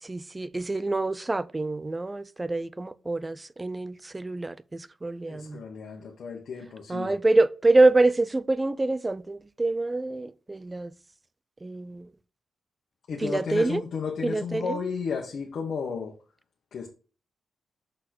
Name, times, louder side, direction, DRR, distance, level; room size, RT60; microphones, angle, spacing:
voice 1, 0.0-5.6 6.9-10.9 11.6-12.1 13.2-13.8 14.2-14.6, right 2 dB, 20° right, 0.4 m, -26 dB
voice 2, 5.3-7.1 13.1-16.1 16.7-16.9, left 5 dB, 65° left, 1.4 m, -33 dB
6.5 x 4.2 x 6.4 m
cardioid pair, 110°, 0 cm